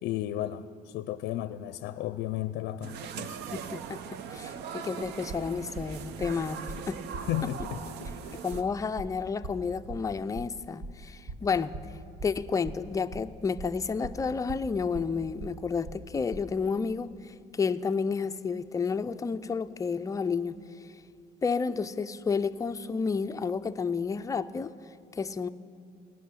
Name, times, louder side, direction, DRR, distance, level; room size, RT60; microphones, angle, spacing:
voice 1, 0.0-3.4 7.3-8.4, left 13 dB, 75° left, 13 dB, 0.5 m, -34 dB
sound 1, 2.8-8.6, right 7 dB, 80° right, 0.7 m, -40 dB
voice 2, 3.2-7.0 8.3-11.8 12.2-20.9 21.4-24.7 25.1-25.5, left 5 dB, 20° left, 9 dB, 0.4 m, -31 dB
sound 2, 5.0-16.5, right 2 dB, 55° right, 1.2 m, -42 dB
17.5 x 6.3 x 10.0 m, 2.4 s
cardioid pair, 110°, 17 cm